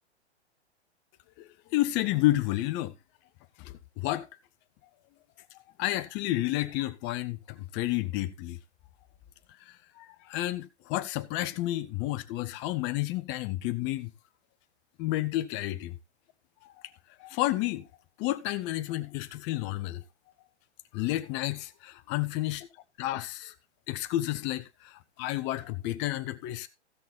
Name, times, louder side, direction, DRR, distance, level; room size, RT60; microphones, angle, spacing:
voice 1, 1.4-2.9 3.6-4.3 5.8-8.6 10.0-14.1 15.0-16.0 17.2-17.9 18.2-20.0 20.9-22.7 23.0-23.5 23.9-26.7, left 16 dB, 30° left, 1.2 m, -31 dB
15.5 x 6.3 x 4.1 m
hypercardioid pair, 120°, 34 cm